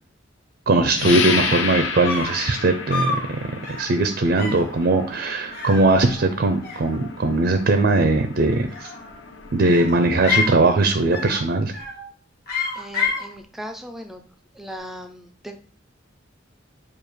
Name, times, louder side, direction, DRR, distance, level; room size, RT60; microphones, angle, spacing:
voice 1, 0.7-3.4 3.8-8.9 9.5-11.7, right 2 dB, 55° right, 7 dB, 0.5 m, -20 dB
sound 1, 1.0-11.3, left 5 dB, 75° left, 0.6 m, -32 dB
sound 2, 1.0-1.1 1.3-1.6 2.0-2.4 2.9-3.3 3.6-3.9 4.4-4.7 5.5-6.4 6.6-7.3 8.6-9.2 9.7-10.6 11.1-11.4 11.7-12.1 12.5-13.3, left 4 dB, 55° left, 1.3 m, -28 dB
voice 2, 12.7-14.2 14.5-15.6, equal, ahead, 6 dB, 0.4 m, -37 dB
7.0 x 2.4 x 3.1 m, 0.43 s
head